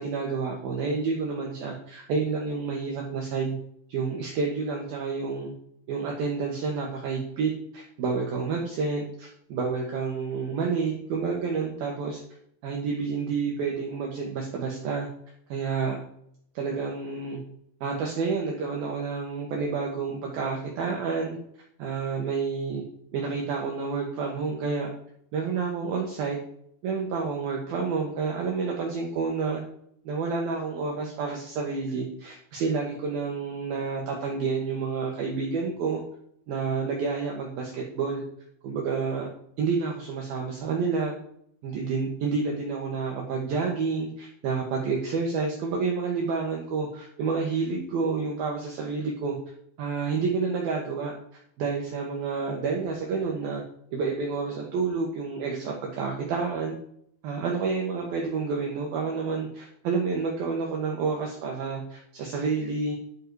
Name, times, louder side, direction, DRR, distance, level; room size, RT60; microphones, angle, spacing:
voice 1, 0.0-3.6 3.9-5.5 5.9-12.2 12.6-15.1 15.5-16.0 16.5-17.4 17.8-21.4 21.8-22.8 23.1-24.9 25.3-26.4 26.8-29.6 30.0-36.0 36.5-38.2 38.6-39.3 39.6-41.1 41.6-49.4 49.8-51.2 51.6-53.6 53.9-56.8 57.2-63.0, right 4 dB, 60° right, -1 dB, 2.7 m, -29 dB
11.0 x 7.6 x 4.8 m, 0.69 s
omnidirectional pair, 5.6 m